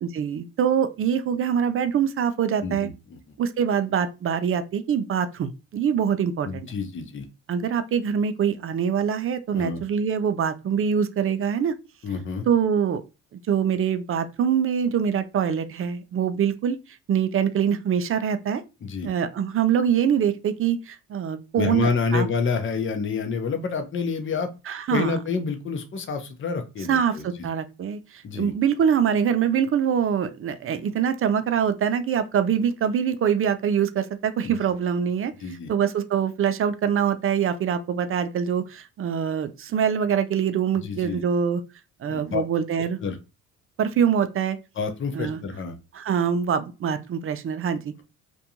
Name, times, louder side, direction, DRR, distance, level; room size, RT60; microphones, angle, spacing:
voice 1, 0.0-2.9 3.4-6.7 7.5-11.7 12.5-13.0 13.3-16.8 17.1-18.6 19.0-22.3 24.7-25.1 26.9-35.3 35.7-41.6 42.0-43.0 43.8-44.6 45.1-45.4 45.9-48.0, right 8 dB, 40° right, 0.4 m, -24 dB
voice 2, 2.6-3.3 6.4-7.3 9.5-9.8 12.0-12.5 18.8-19.1 21.6-24.5 24.9-27.3 28.2-28.5 34.4-34.5 35.4-35.7 40.8-41.2 42.1-42.4 43.0-43.2 44.8-45.8, left 5 dB, 35° left, 0.7 m, -28 dB
2.5 x 2.2 x 2.8 m
supercardioid pair, 65°, 36 cm